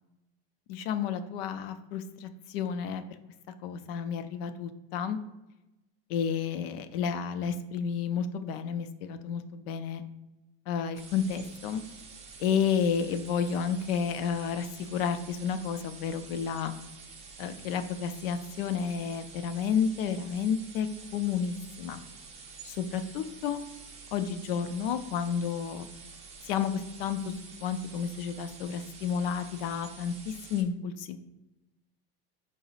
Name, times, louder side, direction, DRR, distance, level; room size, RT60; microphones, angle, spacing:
voice 1, 0.7-3.0 3.6-5.2 6.1-10.0 10.7-11.8 12.4-16.7 17.4-20.9 21.1-22.0 22.6-23.6 24.1-25.9 26.4-26.7 27.0-31.2, left 7 dB, 65° left, 10 dB, 0.5 m, -31 dB
sound 1, 11.0-30.6, right 5 dB, 20° right, 0.6 m, -49 dB
4.7 x 2.0 x 4.0 m, 0.99 s
supercardioid pair, 135°, 32 cm